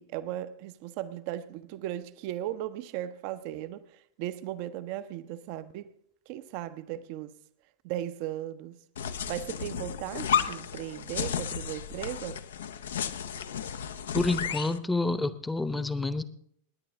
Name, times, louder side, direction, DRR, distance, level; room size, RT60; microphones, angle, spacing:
voice 1, 0.0-5.9 6.3-7.3 7.8-8.8 9.3-12.4, right 12 dB, 45° right, 0.8 m, -37 dB
sound 1, 9.0-14.8, left 8 dB, 65° left, 0.8 m, -33 dB
voice 2, 14.1-16.2, left 2 dB, 5° left, 1.0 m, -28 dB
28.0 x 10.5 x 3.5 m
figure-of-eight pair, 90°, 0 cm